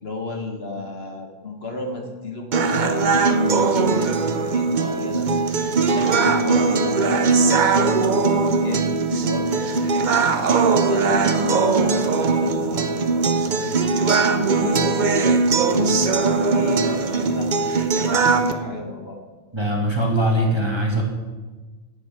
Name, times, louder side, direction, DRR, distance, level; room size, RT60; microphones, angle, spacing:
voice 1, 0.0-5.3 5.8-9.9 10.2-15.9 16.3-19.2, left 2 dB, 55° left, 3 dB, 1.6 m, -34 dB
sound 1, 2.5-18.5, right 4 dB, 45° right, 0.7 m, -20 dB
voice 2, 19.5-21.0, right 1 dB, 20° right, -1 dB, 1.8 m, -21 dB
10.5 x 8.4 x 5.9 m, 1.3 s
omnidirectional pair, 1.3 m